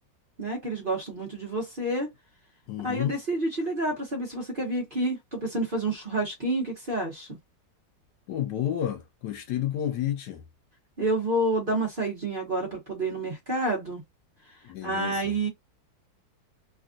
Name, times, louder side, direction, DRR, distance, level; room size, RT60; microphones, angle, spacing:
voice 1, 0.4-2.1 2.8-7.4 11.0-14.0 14.8-15.5, right 1 dB, 35° right, 1.0 m, -29 dB
voice 2, 2.7-3.2 8.3-10.4 14.6-15.3, left 11 dB, 75° left, 1.0 m, -31 dB
3.4 x 2.4 x 2.5 m
omnidirectional pair, 2.0 m